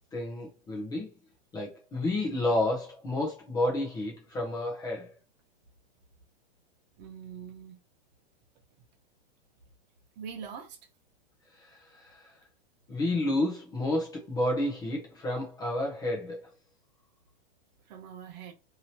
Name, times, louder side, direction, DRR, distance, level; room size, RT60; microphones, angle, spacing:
voice 1, 0.1-1.1 1.5-5.1 11.5-12.4 12.9-16.5, left 1 dB, 10° left, 0.6 m, -31 dB
voice 2, 7.0-7.8 10.2-10.8 17.9-18.5, right 7 dB, 45° right, 0.8 m, -43 dB
2.9 x 2.8 x 2.8 m
supercardioid pair, 160°, 31 cm